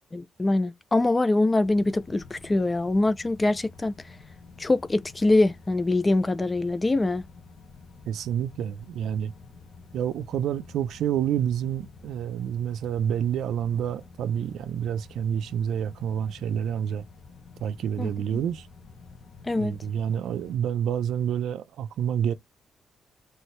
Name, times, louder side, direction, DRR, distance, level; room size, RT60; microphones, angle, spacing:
voice 1, 0.1-4.1 4.6-7.2 18.0-18.1 19.4-19.8, left 2 dB, 15° left, 0.5 m, -24 dB
sound 1, 1.6-20.6, left 4 dB, 50° left, 0.8 m, -49 dB
voice 2, 8.1-9.3 9.9-17.0 17.6-18.7 19.6-22.3, right 9 dB, 90° right, 0.5 m, -28 dB
4.4 x 2.7 x 3.2 m
cardioid pair, 150°, 0 cm